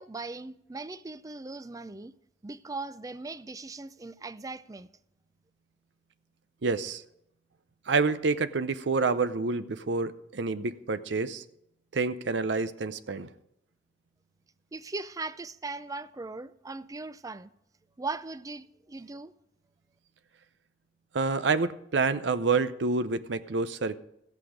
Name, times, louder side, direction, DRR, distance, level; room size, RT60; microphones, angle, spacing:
voice 1, 0.0-2.1 2.4-4.9 14.7-17.5 18.0-19.3, right 3 dB, 20° right, 0.4 m, -39 dB
voice 2, 6.6-7.0 7.9-11.4 11.9-13.3 21.1-24.0, right 4 dB, 85° right, 0.6 m, -28 dB
14.5 x 8.4 x 5.0 m
head